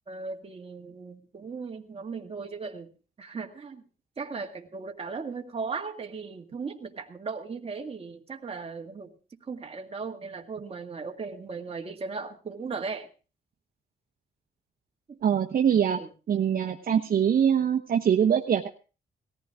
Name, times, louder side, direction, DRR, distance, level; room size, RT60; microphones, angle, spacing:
voice 1, 0.1-2.9 3.2-3.8 4.2-9.1 9.5-13.1 15.1-15.2 16.0-16.1, right 4 dB, 35° right, 2 dB, 2.0 m, -37 dB
voice 2, 15.2-16.0 16.3-18.7, right 8 dB, 60° right, 4 dB, 1.1 m, -23 dB
18.5 x 14.5 x 3.6 m, 0.35 s
cardioid pair, 85°, 17 cm